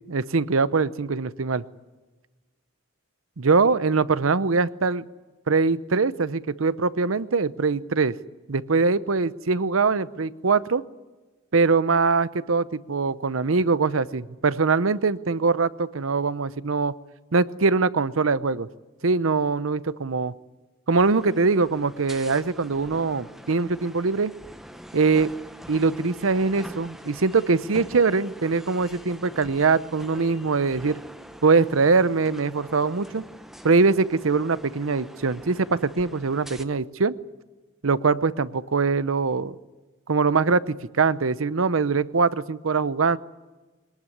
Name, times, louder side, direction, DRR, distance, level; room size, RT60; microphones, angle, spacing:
voice 1, 0.1-1.6 3.4-5.1 5.5-8.2 8.5-10.8 11.5-16.9 17.3-18.7 19.0-20.3 20.9-24.3 24.9-25.3 25.7-31.0 31.4-33.2 33.6-37.1 37.8-39.6 40.1-43.2, right 4 dB, 90° right, 16 dB, 0.8 m, -22 dB
sound 1, 20.9-36.6, equal, ahead, 0.9 m, -44 dB
22.0 x 19.5 x 9.9 m, 1.2 s
head